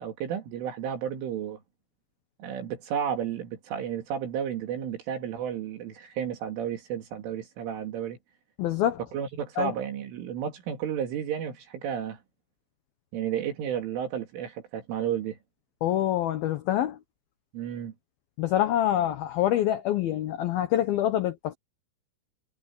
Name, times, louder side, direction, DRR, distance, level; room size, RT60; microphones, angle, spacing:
voice 1, 0.0-1.6 2.4-8.2 9.1-12.2 13.1-15.4 17.5-17.9, right 9 dB, 75° right, 5.0 m, -32 dB
voice 2, 8.6-9.0 9.6-9.7 15.8-17.0 18.4-21.5, left 12 dB, 75° left, 2.2 m, -26 dB
omnidirectional pair, 5.9 m